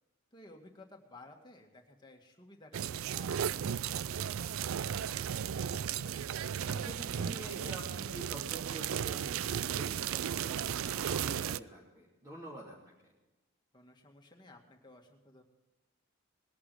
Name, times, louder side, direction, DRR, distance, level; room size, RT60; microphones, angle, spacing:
voice 1, 0.3-3.5 13.7-15.4, left 2 dB, 20° left, 2 dB, 2.0 m, -55 dB
sound 1, 2.7-11.6, right 8 dB, 75° right, 0.4 m, -35 dB
voice 2, 4.9-12.8 13.0-13.1, equal, 15° right, -7 dB, 2.9 m, -48 dB
20.0 x 11.0 x 4.9 m, 1.1 s
head